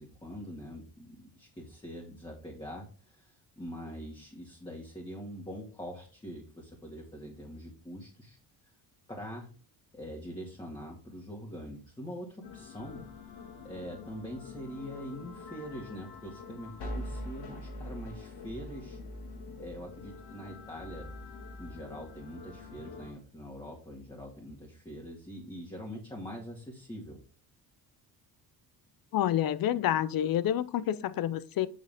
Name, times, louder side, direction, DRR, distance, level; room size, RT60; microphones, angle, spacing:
voice 1, 0.0-8.4 8.6-8.7 9.1-9.5 9.9-13.1 13.6-19.0 19.6-21.1 21.6-27.2, equal, 10° left, 2.0 m, -43 dB
sound 1, 12.4-23.1, left 2 dB, 80° left, 2.2 m, -44 dB
voice 2, 29.1-31.7, left 11 dB, 60° left, 0.7 m, -28 dB
7.9 x 6.5 x 3.5 m
cardioid pair, 135°, 40 cm